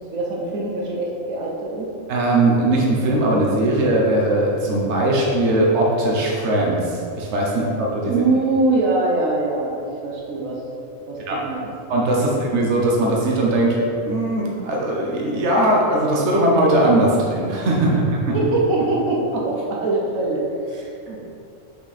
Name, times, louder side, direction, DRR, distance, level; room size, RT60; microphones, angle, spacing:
voice 1, 0.1-1.9 8.1-10.6 11.1-11.7 12.2-12.4 18.3-21.2, right 2 dB, 85° right, -3 dB, 1.5 m, -23 dB
voice 2, 2.1-8.1 11.3-11.4 11.9-13.8 14.0-17.9, right 1 dB, 60° right, -3 dB, 1.4 m, -19 dB
6.1 x 5.8 x 4.3 m, 2.6 s
omnidirectional pair, 1.4 m